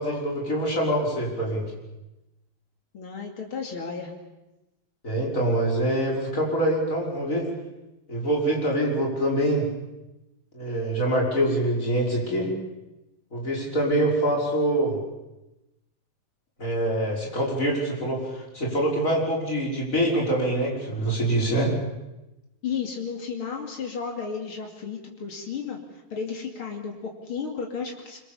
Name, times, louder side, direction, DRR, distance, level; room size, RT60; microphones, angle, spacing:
voice 1, 0.0-1.6 5.0-7.5 8.1-9.7 10.5-12.5 13.3-15.0 16.6-21.7, right 1 dB, 40° left, -2 dB, 6.2 m, -25 dB
voice 2, 2.9-4.1 22.6-28.2, left 6 dB, 90° left, 1 dB, 3.5 m, -33 dB
25.5 x 23.5 x 7.2 m, 0.99 s
omnidirectional pair, 2.3 m